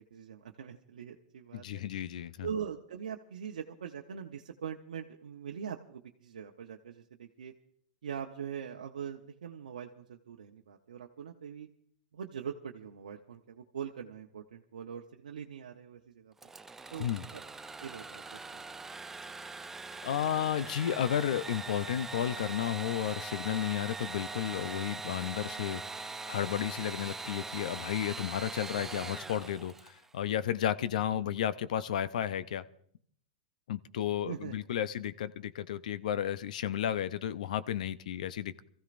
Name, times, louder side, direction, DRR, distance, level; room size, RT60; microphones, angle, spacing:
voice 1, 0.1-1.8 2.4-7.5 8.0-11.7 12.1-16.3 16.9-17.4 17.8-18.6 26.8-26.9 29.0-29.1 31.2-31.3 34.2-34.6, right 8 dB, 90° right, 0 dB, 0.9 m, -42 dB
voice 2, 1.5-2.5 17.0-17.2 20.0-32.6 33.7-38.6, left 10 dB, 75° left, 15 dB, 0.6 m, -33 dB
Engine / Sawing, 16.4-30.1, right 3 dB, 10° right, 0.5 m, -42 dB
25.5 x 15.0 x 2.6 m, 0.63 s
hypercardioid pair, 125°, 4 cm